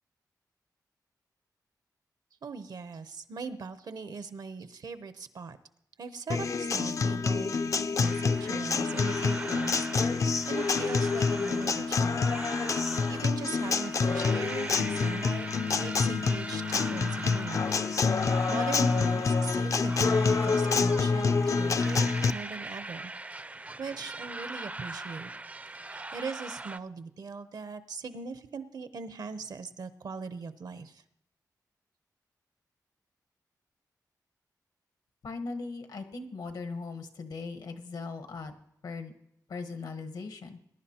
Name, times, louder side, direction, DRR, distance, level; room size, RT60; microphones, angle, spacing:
voice 1, 2.4-5.6 6.0-7.6 7.9-12.2 13.1-15.5 15.8-17.7 18.0-23.1 23.8-25.3 25.8-31.0, right 4 dB, 70° right, 12 dB, 0.7 m, -40 dB
Acoustic guitar, 6.3-22.3, left 4 dB, 50° left, 0.4 m, -27 dB
sound 1, 8.0-26.8, right 2 dB, 20° right, 0.4 m, -41 dB
voice 2, 35.2-38.5 38.8-39.1 39.5-40.6, left 4 dB, 80° left, 7 dB, 1.1 m, -39 dB
20.5 x 10.5 x 2.9 m, 0.76 s
cardioid pair, 70°, 7 cm